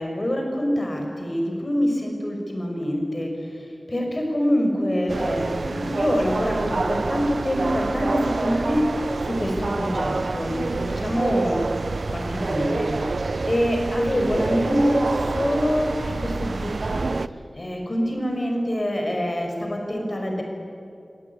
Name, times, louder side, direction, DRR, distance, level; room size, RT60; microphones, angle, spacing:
voice 1, 0.0-3.3 3.9-8.9 9.2-11.6 12.1-12.9 13.4-17.1 17.5-20.4, equal, 35° left, 2 dB, 6.0 m, -25 dB
sound 1, 5.1-17.3, right 3 dB, 70° right, 0.7 m, -27 dB
26.5 x 17.5 x 9.8 m, 2.5 s
wide cardioid pair, 80°, 0 cm